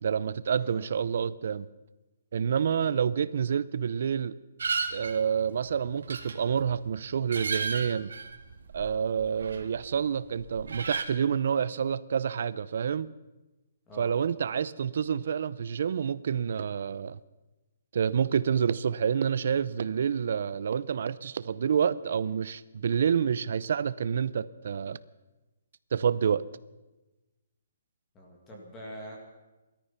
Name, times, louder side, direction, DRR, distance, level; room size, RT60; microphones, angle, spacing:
voice 1, 0.0-1.7 2.3-4.3 4.9-8.1 8.7-13.1 14.0-17.2 17.9-25.0 25.9-26.4, right 7 dB, 50° right, 18 dB, 0.5 m, -28 dB
sound 1, 4.6-10.0 10.2-11.0, right 5 dB, 80° right, 1.9 m, -35 dB
voice 2, 9.3-9.7 13.9-14.2 28.1-29.2, right 1 dB, 10° left, -1 dB, 1.8 m, -45 dB
17.5 x 13.5 x 5.8 m, 1.1 s
hypercardioid pair, 175°, 0 cm